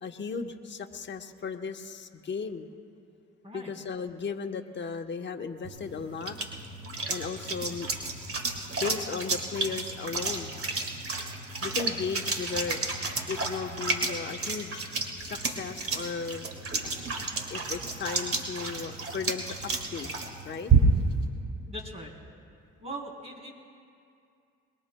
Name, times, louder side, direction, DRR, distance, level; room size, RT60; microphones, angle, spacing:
voice 1, 0.0-2.7 3.5-6.4 7.1-7.9 8.7-10.6 11.6-12.8 13.3-14.9 15.2-16.5 17.5-20.1 20.4-20.7, left 5 dB, 35° left, 4 dB, 1.0 m, -35 dB
sound 1, 5.6-21.2, right 4 dB, 50° right, 1.9 m, -31 dB
voice 2, 21.6-22.1 22.8-23.5, right 1 dB, 20° right, -1 dB, 3.3 m, -40 dB
22.0 x 22.0 x 2.2 m, 2.4 s
cardioid pair, 90°, 30 cm